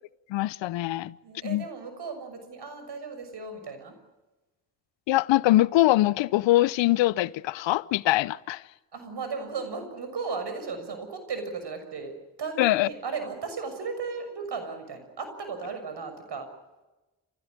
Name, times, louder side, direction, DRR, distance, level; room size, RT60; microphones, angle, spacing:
voice 1, 0.3-1.1 1.4-1.6 5.1-8.6 12.6-12.9, left 16 dB, 75° left, 0.8 m, -23 dB
voice 2, 1.2-3.9 8.9-12.1 12.4-16.5, right 4 dB, 60° right, 6.7 m, -35 dB
28.0 x 16.5 x 9.8 m
hypercardioid pair, 40°, 45 cm